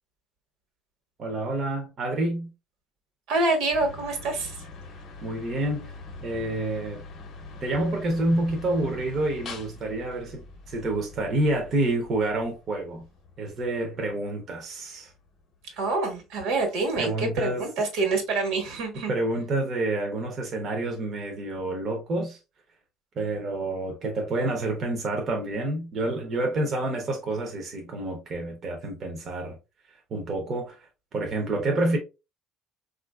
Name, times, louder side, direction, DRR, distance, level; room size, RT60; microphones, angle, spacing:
voice 1, 1.2-2.5 5.2-5.9 6.2-7.0 7.6-13.0 13.4-15.1 17.0-17.7 19.1-22.4 23.2-29.6 30.1-32.0, right 2 dB, 35° right, 0.6 m, -28 dB
voice 2, 3.3-4.5 15.8-19.1, right 3 dB, 80° right, 1.3 m, -26 dB
sound 1, 3.7-16.0, left 3 dB, 45° left, 0.7 m, -44 dB
3.8 x 2.5 x 2.2 m
cardioid pair, 160°, 0 cm